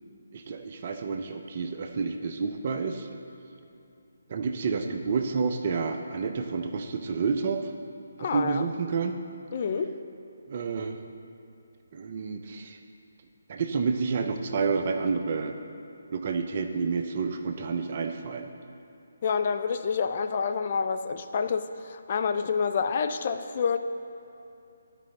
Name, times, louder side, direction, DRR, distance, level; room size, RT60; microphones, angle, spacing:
voice 1, 0.3-3.1 4.3-7.7 8.2-9.2 10.5-11.0 11.9-12.8 13.5-15.6 16.1-18.5, right 5 dB, 40° right, 6 dB, 0.5 m, -29 dB
voice 2, 8.2-8.7 9.5-9.9 19.2-23.8, left 6 dB, 40° left, 8 dB, 0.3 m, -28 dB
12.5 x 4.9 x 3.7 m, 2.7 s
figure-of-eight pair, 145°, 0 cm